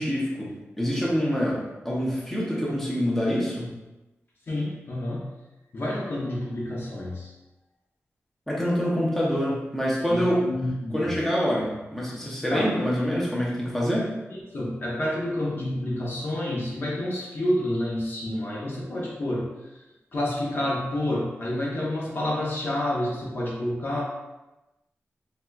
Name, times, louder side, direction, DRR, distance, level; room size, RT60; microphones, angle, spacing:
voice 1, 0.0-3.7 8.5-10.4 10.9-14.1, equal, 5° left, -5 dB, 0.7 m, -26 dB
voice 2, 4.5-5.3 5.7-7.3 10.1-11.1 12.5-12.7 14.3-19.5 20.1-24.0, left 1 dB, 50° left, -4 dB, 0.7 m, -29 dB
3.3 x 2.8 x 2.3 m, 1.0 s
wide cardioid pair, 125°, 5 cm